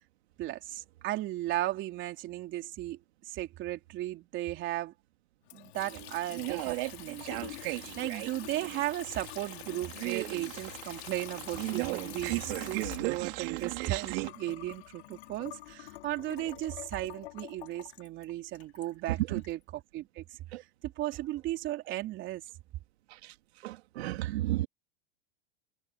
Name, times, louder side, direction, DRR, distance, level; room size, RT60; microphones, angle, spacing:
voice 1, 0.4-4.9 5.5-20.2 20.6-22.4, right 15 dB, 35° right, 3.8 m, -36 dB
Water tap faucet / Sink (filling or washing) / Trickle dribble, 5.4-19.5, left 18 dB, 75° left, 4.7 m, -47 dB
sound 1, 5.9-14.3, right 25 dB, 60° right, 3.1 m, -37 dB
voice 2, 23.6-24.7, right 15 dB, 80° right, 2.4 m, -33 dB
supercardioid pair, 150°, 32 cm